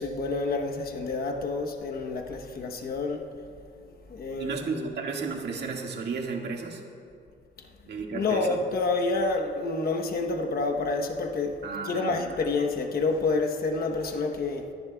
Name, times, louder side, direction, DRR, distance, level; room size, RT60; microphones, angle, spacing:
voice 1, 0.0-3.2 4.1-5.0 8.1-11.5 11.8-14.7, left 3 dB, 50° left, 3 dB, 1.0 m, -28 dB
voice 2, 4.4-6.8 7.9-8.6 11.6-12.4, right 5 dB, 60° right, 0 dB, 1.9 m, -33 dB
24.0 x 11.0 x 2.3 m, 2.3 s
cardioid pair, 90°, 20 cm